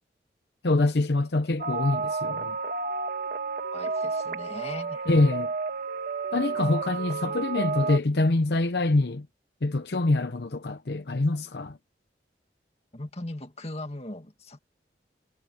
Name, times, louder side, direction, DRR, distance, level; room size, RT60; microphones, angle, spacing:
voice 1, 0.6-2.6 5.1-5.5 6.3-9.3 9.6-11.8, left 2 dB, 70° left, 0.8 m, -25 dB
sound 1, 1.6-8.0, right 4 dB, 50° right, 1.6 m, -31 dB
voice 2, 3.7-5.0 12.9-14.7, left 1 dB, 35° left, 1.9 m, -39 dB
head